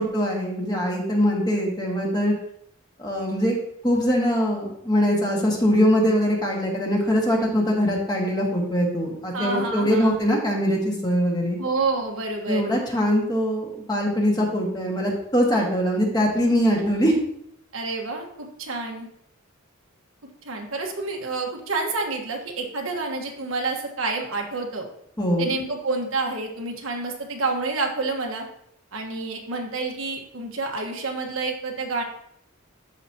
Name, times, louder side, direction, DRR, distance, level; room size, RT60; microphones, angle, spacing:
voice 1, 0.0-2.3 3.0-3.5 3.8-11.6 12.5-17.1 25.2-25.5, equal, 20° left, -1 dB, 1.6 m, -22 dB
voice 2, 9.3-10.2 11.6-12.7 17.7-19.1 20.4-24.9 25.4-28.5 28.9-32.0, right 3 dB, 80° right, 2 dB, 1.4 m, -28 dB
12.0 x 5.0 x 2.8 m, 0.71 s
head